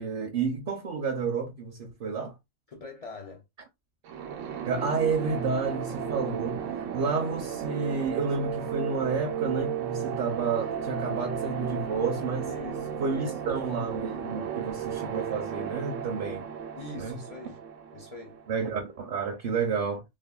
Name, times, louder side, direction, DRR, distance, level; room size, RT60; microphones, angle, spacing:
voice 1, 0.0-2.3 4.6-12.5 13.0-16.5 17.0-17.2 18.5-20.0, right 5 dB, 55° right, 0.7 m, -30 dB
voice 2, 2.7-3.4 12.4-13.4 16.7-17.6 17.9-18.4, left 3 dB, 70° left, 0.3 m, -44 dB
sound 1, 4.0-18.8, right 8 dB, 85° right, 1.0 m, -34 dB
3.3 x 2.0 x 2.3 m
omnidirectional pair, 1.3 m